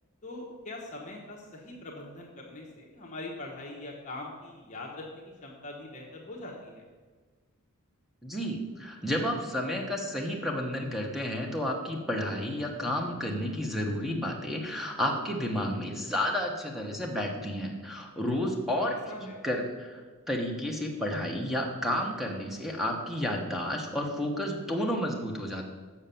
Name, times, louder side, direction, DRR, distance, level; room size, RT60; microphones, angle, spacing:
voice 1, 0.2-6.8 18.7-19.4, left 2 dB, 35° left, -2 dB, 1.2 m, -42 dB
voice 2, 8.2-19.0 19.4-20.0 20.3-25.6, left 1 dB, ahead, 1 dB, 1.1 m, -31 dB
7.5 x 6.3 x 6.9 m, 1.4 s
head